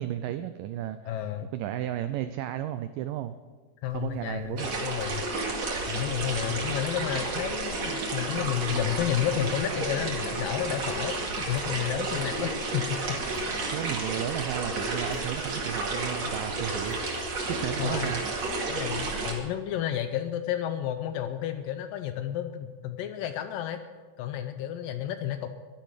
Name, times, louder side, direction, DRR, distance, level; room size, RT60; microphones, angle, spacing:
voice 1, 0.0-3.3 3.9-4.8 13.7-18.2, right 12 dB, 90° right, 11 dB, 1.9 m, -34 dB
voice 2, 1.1-1.5 3.8-5.2 5.9-13.4 17.8-18.1 18.7-23.8 24.2-25.5, left 11 dB, 80° left, 8 dB, 2.1 m, -31 dB
sound 1, 3.8-17.9, equal, 30° left, 3.1 m, -48 dB
sound 2, 4.6-19.3, right 3 dB, 50° right, 2.9 m, -31 dB
12.0 x 11.5 x 6.6 m, 1.4 s
omnidirectional pair, 4.5 m